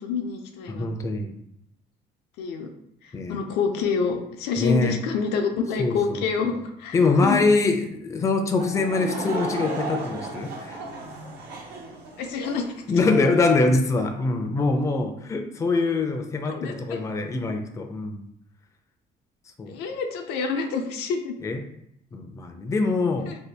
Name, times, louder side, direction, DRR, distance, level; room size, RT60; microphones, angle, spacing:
voice 1, 0.0-0.9 2.4-2.7 3.3-7.0 7.2-7.5 12.2-12.7 16.5-17.0 19.7-21.3 23.2-23.4, left 5 dB, 90° left, 4 dB, 0.5 m, -27 dB
voice 2, 0.7-1.3 3.1-3.4 4.6-5.0 5.8-6.6 6.9-10.8 12.9-18.2 19.6-19.8 21.4-21.6 22.1-23.3, left 3 dB, 20° left, 5 dB, 0.3 m, -24 dB
Laughter / Crowd, 8.5-12.8, right 2 dB, 75° right, 0.7 m, -34 dB
2.7 x 2.3 x 3.3 m, 0.75 s
cardioid pair, 110°, 17 cm